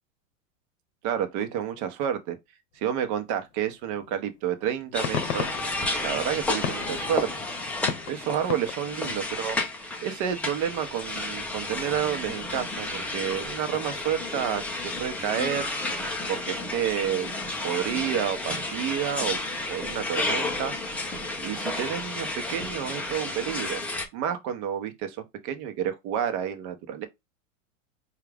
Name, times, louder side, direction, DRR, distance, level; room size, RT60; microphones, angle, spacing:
voice 1, 1.0-2.4 2.8-5.5 6.0-7.3 8.1-9.6 10.0-15.7 16.3-17.3 17.6-19.4 19.7-20.7 21.4-23.8 24.1-25.2 25.4-27.1, right 9 dB, 45° right, 0.9 m, -30 dB
sound 1, 4.0-4.1 4.6-9.2, left 8 dB, 75° left, 0.9 m, -36 dB
sound 2, 4.9-24.1, left 2 dB, 5° left, 0.4 m, -32 dB
4.7 x 2.4 x 3.4 m
hypercardioid pair, 130°, 41 cm